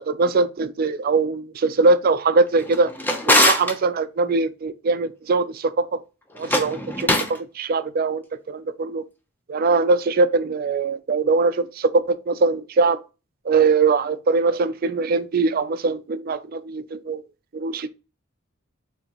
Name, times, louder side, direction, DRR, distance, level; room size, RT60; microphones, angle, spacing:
voice 1, 0.0-2.9 3.3-5.9 6.4-9.0 9.5-13.0 13.5-17.2 17.5-17.9, right 3 dB, 45° right, 0.4 m, -21 dB
Drawer open or close, 2.6-3.8 6.3-7.4, left 1 dB, 10° left, 0.5 m, -21 dB
6.4 x 2.8 x 2.9 m
head